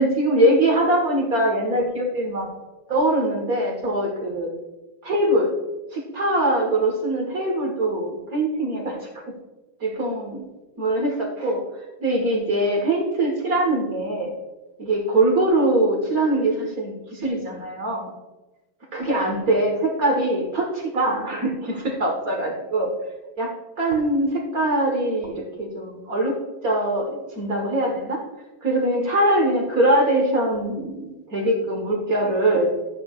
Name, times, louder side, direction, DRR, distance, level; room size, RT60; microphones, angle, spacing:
voice 1, 0.0-2.5 2.9-4.5 5.0-5.5 5.9-9.0 9.8-10.4 10.8-11.6 12.0-14.3 14.8-18.1 18.9-22.9 23.4-23.5 23.8-26.3 26.6-28.2 28.6-32.7, right 1 dB, 45° right, -1 dB, 1.8 m, -22 dB
13.5 x 9.1 x 2.5 m, 1.1 s
omnidirectional pair, 2.3 m